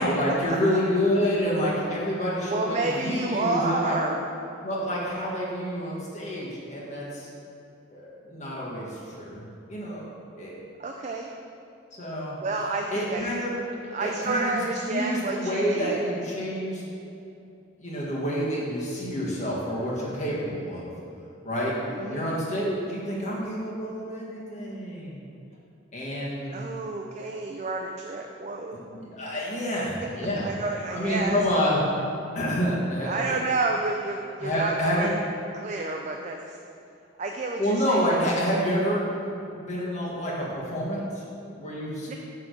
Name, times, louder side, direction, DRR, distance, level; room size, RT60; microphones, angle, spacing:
voice 1, 0.0-4.0 4.6-7.3 7.9-9.4 9.7-10.0 10.4-10.5 12.0-12.4 12.9-13.5 14.0-14.6 14.9-16.8 17.8-20.9 21.4-21.7 22.1-25.2 25.9-26.6 28.9-30.5 30.9-31.8 32.3-33.4 34.4-35.1 37.6-39.1 39.5-42.2, equal, 35° left, -5 dB, 1.6 m, -28 dB
voice 2, 2.5-4.2 10.8-11.3 12.4-13.3 13.9-16.1 21.9-22.4 26.5-28.8 30.4-31.4 33.0-35.2 35.5-36.6 37.2-38.1 42.1-42.2, right 3 dB, 35° right, 1 dB, 0.4 m, -30 dB
8.1 x 3.8 x 6.3 m, 2.7 s
head